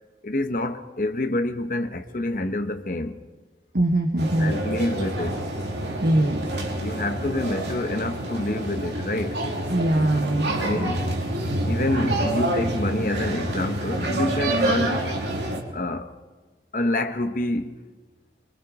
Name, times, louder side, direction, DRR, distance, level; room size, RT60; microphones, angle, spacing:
voice 1, 0.2-3.2 4.4-5.4 6.8-9.4 10.6-11.0 11.6-15.1 15.7-16.1 16.7-17.8, left 1 dB, 50° left, 1.1 m, -27 dB
voice 2, 3.7-4.5 6.0-6.7 9.7-10.9, right 1 dB, 60° right, 1.4 m, -22 dB
sound 1, 4.2-15.6, right 1 dB, 80° right, 2.9 m, -27 dB
24.0 x 23.5 x 4.9 m
head